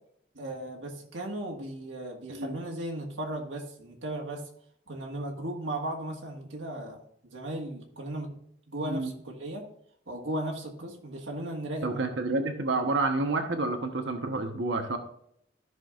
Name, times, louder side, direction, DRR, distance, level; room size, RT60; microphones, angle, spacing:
voice 1, 0.3-4.4 4.9-7.0 7.3-8.4 8.7-9.7 10.1-12.0, right 1 dB, 85° right, -1 dB, 1.7 m, -36 dB
voice 2, 11.8-15.0, right 2 dB, 70° right, 5 dB, 1.0 m, -29 dB
14.5 x 6.1 x 2.5 m, 0.69 s
head